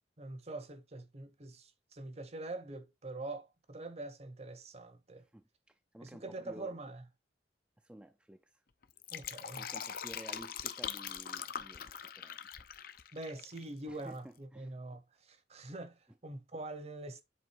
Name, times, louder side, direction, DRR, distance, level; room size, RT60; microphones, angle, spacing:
voice 1, 0.2-5.2 6.0-7.0 9.1-9.7 13.1-17.2, right 2 dB, 35° right, 0.9 m, -44 dB
voice 2, 5.2-6.7 7.8-8.6 9.6-12.7 13.9-14.7, right 1 dB, 5° right, 0.4 m, -53 dB
Fill (with liquid), 8.8-13.6 13.9-14.0, left 8 dB, 55° left, 0.6 m, -42 dB
7.7 x 3.8 x 4.5 m
head